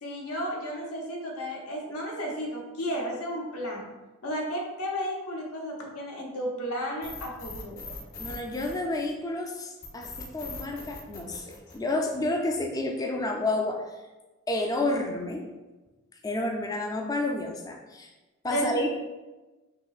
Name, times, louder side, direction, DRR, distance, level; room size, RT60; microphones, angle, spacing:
voice 1, 0.0-3.8 4.2-7.9 18.5-18.7, equal, 85° left, -1 dB, 0.9 m, -33 dB
sound 1, 7.0-9.3 9.8-12.3, left 3 dB, 40° left, 0.9 m, -41 dB
voice 2, 8.2-13.8 14.5-15.5 16.2-18.1 18.4-18.9, left 2 dB, 15° left, 2 dB, 0.3 m, -30 dB
5.4 x 2.9 x 2.4 m, 1.2 s
head